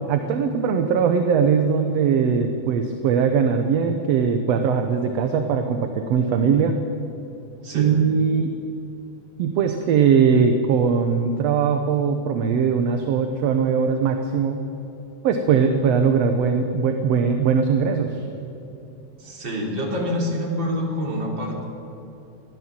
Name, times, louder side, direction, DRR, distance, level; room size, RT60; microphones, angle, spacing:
voice 1, 0.1-6.8 7.8-8.5 9.4-14.6 15.2-18.2, right 6 dB, 65° right, 6 dB, 2.0 m, -20 dB
voice 2, 7.6-7.9 19.2-21.6, equal, 40° right, -2 dB, 4.2 m, -26 dB
22.0 x 15.5 x 7.6 m, 2.8 s
omnidirectional pair, 3.3 m